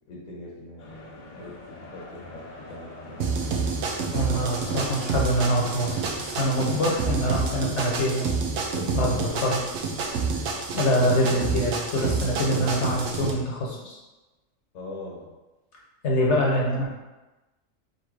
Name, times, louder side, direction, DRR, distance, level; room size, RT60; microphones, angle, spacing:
voice 1, 0.1-3.3 8.7-9.4 12.0-12.6 14.7-15.3, left 2 dB, 80° left, -4 dB, 1.3 m, -40 dB
sound 1, 0.8-7.6, left 2 dB, 45° left, 0.7 m, -43 dB
sound 2, 3.2-13.3, right 4 dB, 85° right, 1.1 m, -28 dB
voice 2, 4.1-8.3 8.9-9.6 10.7-14.0 16.0-16.9, equal, 60° left, -2 dB, 1.1 m, -25 dB
3.9 x 2.7 x 4.6 m, 1.1 s
omnidirectional pair, 1.4 m